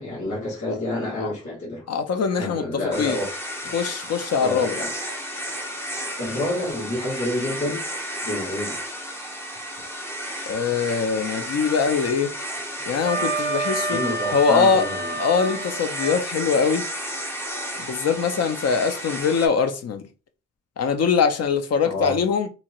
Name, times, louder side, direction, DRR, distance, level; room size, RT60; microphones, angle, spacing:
voice 1, 0.0-1.8 2.3-3.3 4.4-4.9 6.2-7.8 8.2-8.8 13.9-15.2 21.8-22.2, left 1 dB, 70° left, 1.5 m, -28 dB
voice 2, 1.9-3.2 3.7-4.8 10.5-12.3 12.9-14.0 14.3-14.8 15.2-16.9 17.8-20.0 20.8-22.5, left 6 dB, 55° left, 0.5 m, -22 dB
sound 1, 2.9-19.5, equal, 10° left, 0.6 m, -33 dB
Wind instrument woodwind instrument, 13.0-16.2, right 3 dB, 35° right, 0.5 m, -29 dB
2.8 x 2.4 x 2.9 m
wide cardioid pair, 175°, 30 cm